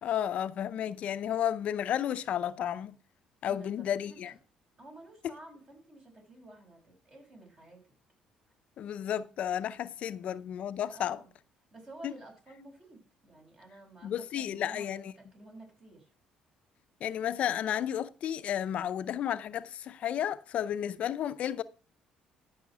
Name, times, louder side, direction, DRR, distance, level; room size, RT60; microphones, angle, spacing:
voice 1, 0.0-3.0 3.4-4.3 8.8-11.2 12.0-12.1 14.0-15.1 17.0-21.6, left 10 dB, 60° left, 0.6 m, -32 dB
voice 2, 3.4-4.4 4.8-7.9 10.1-10.5 10.9-11.3 11.7-16.1, right 2 dB, 35° right, 5.9 m, -52 dB
13.0 x 5.7 x 6.0 m
cardioid pair, 95°, 2 cm